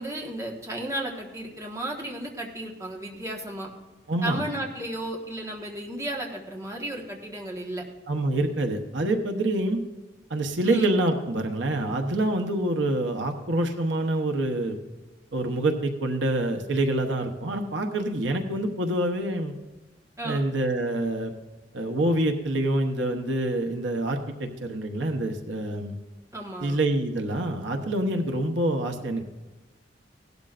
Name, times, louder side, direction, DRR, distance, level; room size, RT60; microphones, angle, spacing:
voice 1, 0.0-3.7 4.2-7.8 10.6-10.9 20.2-20.5 26.3-26.8, right 1 dB, 15° right, 0 dB, 1.5 m, -34 dB
voice 2, 4.1-4.4 8.1-9.8 10.3-14.8 15.3-19.5 20.2-21.3 21.7-26.0 26.6-29.3, right 1 dB, 85° right, 5 dB, 1.0 m, -26 dB
17.5 x 12.0 x 2.5 m, 1.2 s
head